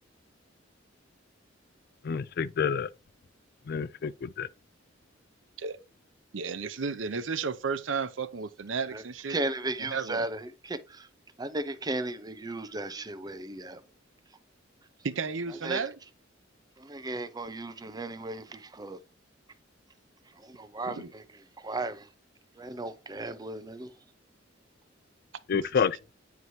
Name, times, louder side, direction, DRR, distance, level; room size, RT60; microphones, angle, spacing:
voice 1, 2.0-2.9 3.7-4.5 25.5-26.0, left 6 dB, 55° left, 0.4 m, -28 dB
voice 2, 6.3-9.4 9.9-10.2 15.0-15.9 21.0-21.1 25.5-25.6, right 5 dB, 75° right, 0.7 m, -33 dB
voice 3, 9.3-11.1 11.4-13.8 15.6-15.8 16.8-19.0 20.3-22.1 22.5-23.9, right 2 dB, 20° right, 0.6 m, -36 dB
9.5 x 4.6 x 2.7 m
head